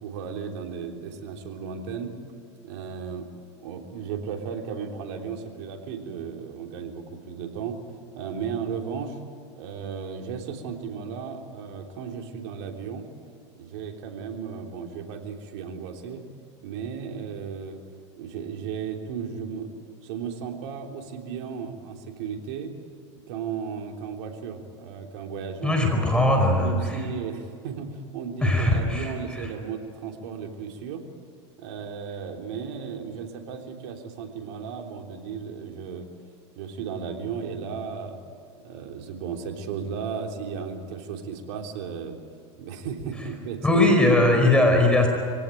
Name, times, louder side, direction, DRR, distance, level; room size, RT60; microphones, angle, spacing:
voice 1, 0.0-2.1 2.6-3.3 3.6-7.8 8.1-9.2 9.6-13.1 13.6-16.2 16.6-17.8 18.1-19.7 20.0-22.7 23.1-25.8 26.1-26.2 26.6-31.0 31.6-36.1 36.5-38.2 38.6-42.2 42.6-44.3, right 6 dB, 65° right, 3 dB, 3.4 m, -35 dB
voice 2, 25.6-27.0 28.4-29.5 43.6-45.1, left 1 dB, 5° left, 2 dB, 4.8 m, -20 dB
24.0 x 17.5 x 9.2 m, 2.3 s
hypercardioid pair, 105°, 15 cm